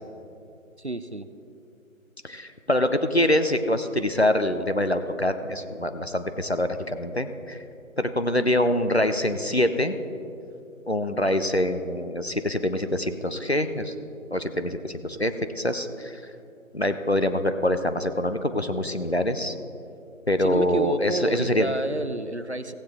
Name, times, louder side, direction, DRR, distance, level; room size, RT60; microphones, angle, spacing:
voice 1, 0.8-1.3 20.4-22.7, right 1 dB, 55° right, 12 dB, 0.5 m, -30 dB
voice 2, 2.2-7.6 8.0-9.9 10.9-13.9 14.3-16.2 16.7-19.6 20.3-21.7, left 1 dB, 50° left, 9 dB, 0.5 m, -25 dB
15.5 x 8.8 x 3.5 m, 2.7 s
figure-of-eight pair, 175°, 41 cm